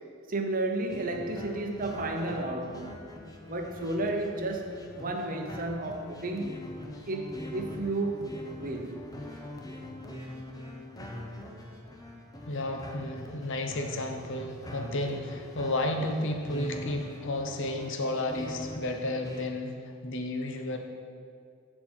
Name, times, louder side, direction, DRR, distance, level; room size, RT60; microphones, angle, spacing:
voice 1, 0.3-3.0 3.5-6.5 7.1-8.3 8.6-9.0, right 2 dB, 40° right, 4 dB, 0.8 m, -32 dB
sound 1, 0.9-19.4, left 1 dB, 15° left, 0.7 m, -43 dB
voice 2, 12.4-20.8, left 1 dB, 55° left, 4 dB, 0.8 m, -32 dB
13.0 x 4.5 x 4.4 m, 2.2 s
head